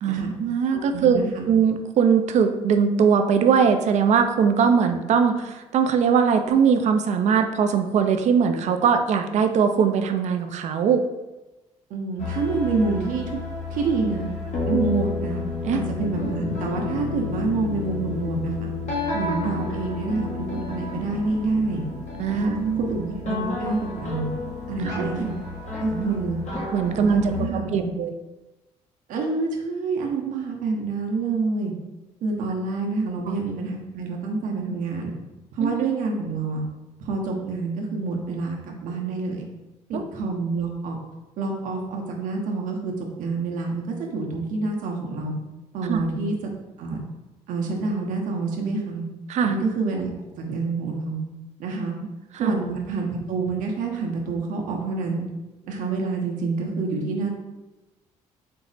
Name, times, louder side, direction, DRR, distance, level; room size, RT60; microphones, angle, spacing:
voice 1, 0.0-11.0 15.6-15.8 22.2-22.8 24.8-25.3 25.9-26.2 26.7-28.1 35.6-35.8 39.9-40.0 45.9-46.0 49.3-49.5 52.3-52.5, right 6 dB, 60° right, 7 dB, 0.4 m, -21 dB
voice 2, 0.7-1.5 11.9-13.4 13.7-14.3 14.7-15.4 15.7-18.7 19.1-21.8 22.3-24.3 24.7-25.4 25.8-26.4 26.8-27.9 29.1-31.7 32.2-35.1 35.5-36.6 37.0-39.5 39.9-41.0 41.4-42.9 43.2-45.3 45.7-46.3 46.8-47.0 47.5-49.0 49.4-50.1 50.4-51.2 51.6-51.9 52.4-55.2 55.7-57.3, right 3 dB, 75° right, 1 dB, 0.8 m, -27 dB
sound 1, 12.2-27.5, left 4 dB, 60° left, 1.1 m, -31 dB
4.5 x 2.0 x 4.0 m, 1.1 s
cardioid pair, 85°, 14 cm